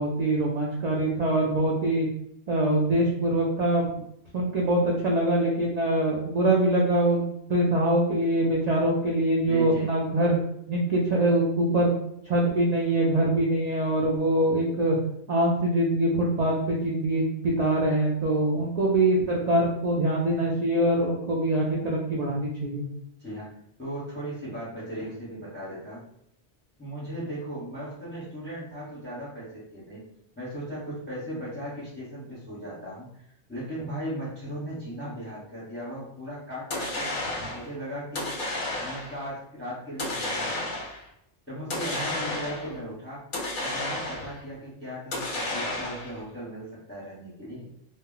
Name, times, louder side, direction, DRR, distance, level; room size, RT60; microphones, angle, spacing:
voice 1, 0.0-2.1 2.5-4.0 4.3-10.4 10.7-12.0 12.2-15.0 15.3-22.8, right 1 dB, 55° right, -3 dB, 0.5 m, -24 dB
voice 2, 9.4-9.9 23.2-23.5 23.8-26.0 26.8-30.0 30.4-33.2 33.5-38.3 38.8-40.6 41.5-43.2 43.6-47.7, equal, 10° left, -8 dB, 0.8 m, -37 dB
sound 1, 36.7-37.7 38.2-39.2 40.0-41.0 41.7-42.8 43.3-44.4 45.1-46.2, left 2 dB, 55° left, 0.7 m, -32 dB
2.1 x 2.0 x 3.7 m, 0.76 s
omnidirectional pair, 1.1 m